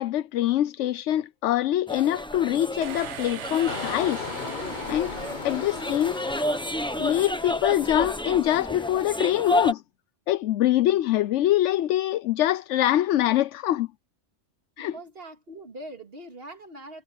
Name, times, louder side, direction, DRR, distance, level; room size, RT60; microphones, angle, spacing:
voice 1, 0.0-4.3 4.9-5.2 5.4-6.1 6.4-6.6 7.0-9.8 10.3-13.9 14.8-14.9, left 13 dB, 80° left, 0.9 m, -24 dB
sound 1, 1.9-9.7, left 1 dB, 5° left, 0.8 m, -31 dB
sound 2, 2.8-6.6, right 10 dB, 75° right, 1.1 m, -41 dB
Engine, 3.7-8.3 8.7-9.0, left 5 dB, 45° left, 1.1 m, -37 dB
voice 2, 5.5-5.9 14.8-17.0, right 1 dB, 55° right, 2.8 m, -42 dB
omnidirectional pair, 1.2 m